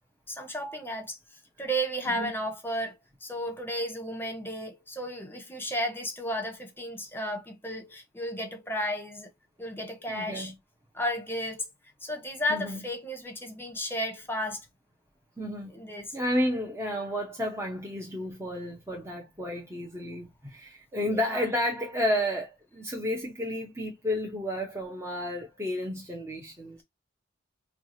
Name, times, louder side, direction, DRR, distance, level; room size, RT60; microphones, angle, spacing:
voice 1, 0.3-1.2 1.6-9.3 9.6-10.5 10.9-11.7 12.0-14.6 15.7-16.2 21.1-21.4, equal, 10° left, 1.0 m, -33 dB
voice 2, 10.1-10.5 12.5-12.8 15.4-15.7 16.1-26.8, left 1 dB, 15° right, 0.8 m, -31 dB
4.6 x 2.4 x 2.7 m
head